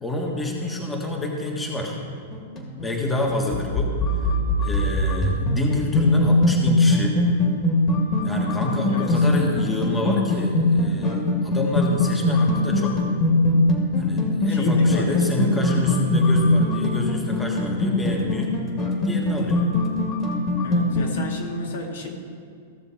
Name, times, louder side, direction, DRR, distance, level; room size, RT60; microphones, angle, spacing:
voice 1, 0.0-2.0 2.8-4.3 4.6-7.2 8.2-13.0 14.0-18.5 19.0-19.6, left 1 dB, 10° left, 0 dB, 1.6 m, -28 dB
sound 1, 2.2-21.1, left 2 dB, 30° left, 2.3 m, -21 dB
voice 2, 14.5-15.6 20.6-22.1, left 2 dB, 75° left, 0 dB, 2.5 m, -31 dB
16.0 x 6.9 x 4.3 m, 2.3 s
hypercardioid pair, 120°, 0 cm